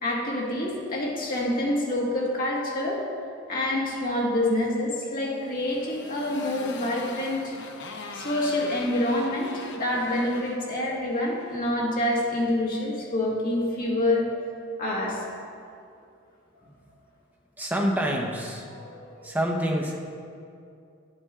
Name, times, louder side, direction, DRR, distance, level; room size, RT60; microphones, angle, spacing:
voice 1, 0.0-3.0 3.5-7.8 8.1-14.3 14.8-15.2 18.8-19.2, left 1 dB, 45° left, -4 dB, 1.9 m, -27 dB
Motorcycle, 5.2-11.7, left 4 dB, 60° left, 0.8 m, -42 dB
voice 2, 17.6-18.6 19.2-20.0, equal, 10° right, -1 dB, 0.9 m, -27 dB
10.5 x 8.4 x 3.7 m, 2.4 s
head